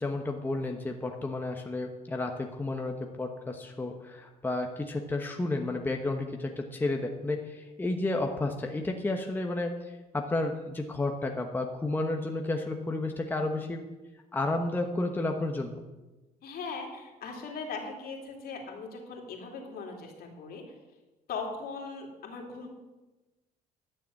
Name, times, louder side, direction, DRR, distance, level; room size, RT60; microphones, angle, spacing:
voice 1, 0.0-9.7 10.1-13.8 14.3-15.8, left 2 dB, 10° left, 2 dB, 1.1 m, -31 dB
voice 2, 16.4-20.6 21.3-22.7, left 4 dB, 65° left, 1 dB, 3.0 m, -39 dB
11.5 x 6.9 x 7.7 m, 1.1 s
cardioid pair, 110°, 17 cm